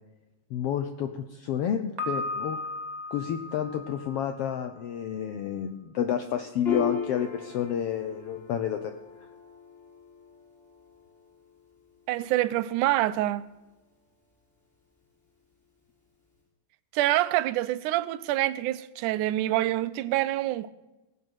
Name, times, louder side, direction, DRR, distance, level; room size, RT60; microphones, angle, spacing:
voice 1, 0.5-2.6 3.1-8.9, left 9 dB, 80° left, 1.3 m, -30 dB
Piano, 2.0-4.9, left 2 dB, 35° right, 2.0 m, -36 dB
Piano 2, 6.6-13.6, left 6 dB, 15° left, 5.4 m, -38 dB
voice 2, 12.1-13.4 16.9-20.7, right 15 dB, 90° right, 2.1 m, -26 dB
18.5 x 7.5 x 6.2 m
omnidirectional pair, 3.5 m